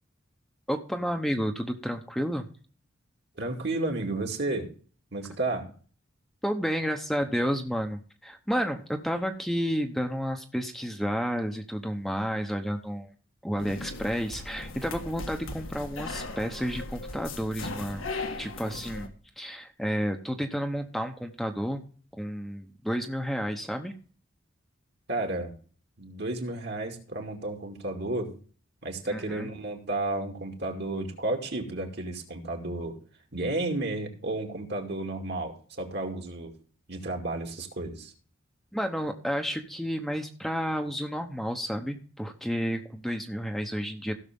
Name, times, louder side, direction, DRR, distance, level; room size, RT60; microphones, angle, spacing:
voice 1, 0.7-2.5 6.4-13.1 13.4-18.1 18.4-21.8 22.1-23.9 29.0-29.5 38.7-44.1, equal, ahead, 4 dB, 0.9 m, -31 dB
voice 2, 3.4-4.7 5.1-5.7 25.1-25.5 26.0-28.3 28.8-33.0 33.3-36.5 36.9-38.1, right 2 dB, 55° right, 3 dB, 2.4 m, -32 dB
sound 1, 13.6-19.1, left 3 dB, 85° left, 1.7 m, -38 dB
16.0 x 6.5 x 3.6 m, 0.42 s
head